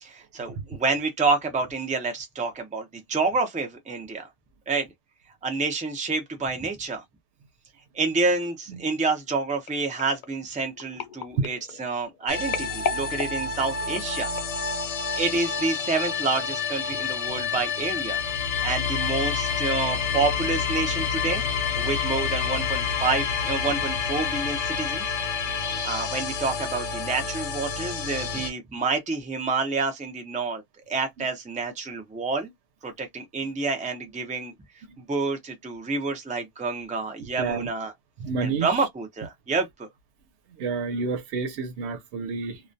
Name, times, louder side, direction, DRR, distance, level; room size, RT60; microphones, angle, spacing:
voice 1, 0.0-4.3 4.7-4.9 5.4-7.0 7.9-14.3 15.1-18.2 18.6-21.4 21.7-25.0 25.6-32.5 32.8-34.5 35.0-37.9 38.4-39.9, right 4 dB, 10° right, 0.3 m, -28 dB
sound 1, 9.7-14.7 15.3-15.5 15.8-15.9, left 6 dB, 60° left, 0.5 m, -36 dB
sound 2, 12.3-28.5, left 6 dB, 80° left, 0.9 m, -28 dB
voice 2, 25.4-25.8 37.4-37.7 38.2-38.7 40.6-42.6, right 4 dB, 85° right, 0.9 m, -29 dB
2.3 x 2.2 x 2.5 m
omnidirectional pair, 1.1 m